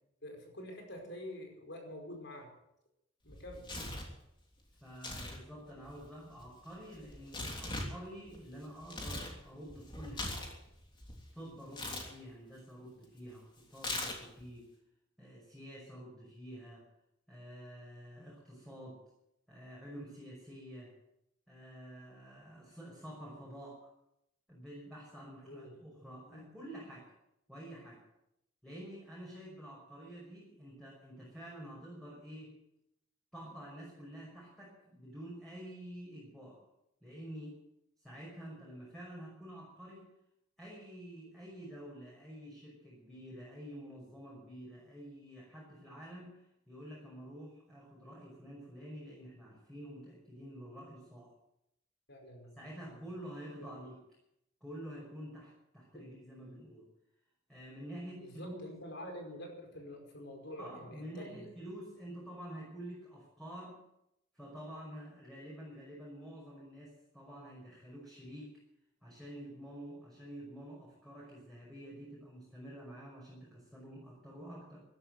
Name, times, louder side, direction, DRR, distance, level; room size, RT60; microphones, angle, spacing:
voice 1, 0.2-2.5 3.2-3.7 25.4-25.8 26.3-26.4 52.1-53.0 53.6-53.7 55.9-56.1 58.1-61.5, left 1 dB, 65° left, 2 dB, 5.1 m, -47 dB
Tearing, 3.3-4.1 4.9-5.4 5.7-9.3 9.7-11.2 11.7-12.1 13.8-14.4, left 2 dB, 25° left, 3.1 m, -41 dB
voice 2, 4.8-10.4 11.3-14.7 15.2-16.9 17.3-19.0 19.5-21.0 21.5-23.8 24.5-27.1 27.5-28.0 28.6-32.6 33.3-36.6 37.0-37.6 38.0-40.1 40.6-51.3 52.6-54.0 54.6-56.9 57.5-58.6 60.6-63.8 64.3-68.5 69.0-74.8, equal, ahead, -5 dB, 5.6 m, -48 dB
15.0 x 12.0 x 8.0 m, 0.82 s
head